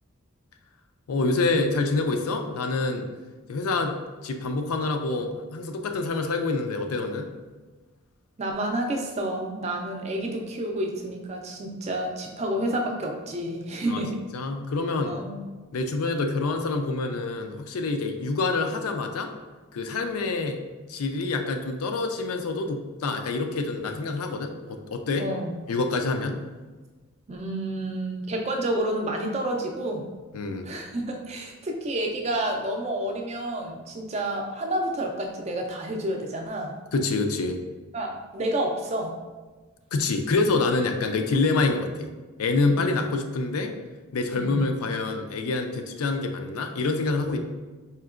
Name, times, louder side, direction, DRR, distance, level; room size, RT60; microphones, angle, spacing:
voice 1, 1.1-3.1 3.5-7.3 13.8-14.0 14.3-15.2 15.7-19.3 19.7-20.6 20.9-25.3 25.7-26.4 30.3-30.7 36.9-37.6 39.9-42.1 42.4-43.7 44.1-47.4, left 3 dB, 80° left, 6 dB, 0.4 m, -26 dB
voice 2, 8.4-14.2 15.1-15.4 25.2-25.5 27.3-30.0 30.6-36.7 37.9-39.1 42.6-42.9 44.3-44.6, right 1 dB, 30° right, 2 dB, 0.4 m, -29 dB
4.4 x 2.8 x 2.4 m, 1.3 s
head